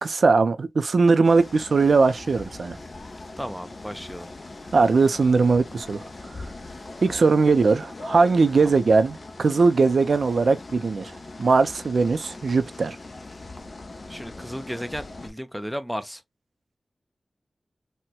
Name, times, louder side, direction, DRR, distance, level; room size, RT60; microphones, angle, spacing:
voice 1, 0.0-2.8 4.7-6.4 7.0-11.1 11.4-13.0, right 4 dB, 75° right, 0.5 m, -20 dB
sound 1, 1.2-15.3, left 2 dB, 50° left, 0.6 m, -41 dB
voice 2, 3.4-4.3 7.1-7.3 8.6-8.8 14.1-16.2, equal, ahead, 0.4 m, -34 dB
4.3 x 2.1 x 2.2 m
wide cardioid pair, 105°, 0 cm